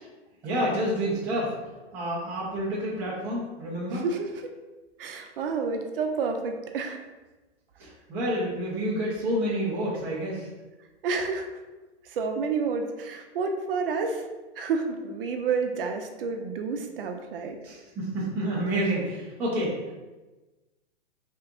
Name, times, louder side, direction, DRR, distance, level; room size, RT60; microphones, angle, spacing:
voice 1, 0.4-1.5 1.9-4.0 7.8-10.5 17.6-19.8, right 1 dB, 5° right, -8 dB, 0.4 m, -29 dB
voice 2, 3.9-4.4 5.0-7.0 11.0-11.6 12.0-14.3 14.6-17.6, right 4 dB, 55° right, 4 dB, 0.6 m, -29 dB
3.3 x 2.9 x 3.5 m, 1.2 s
hypercardioid pair, 155°, 34 cm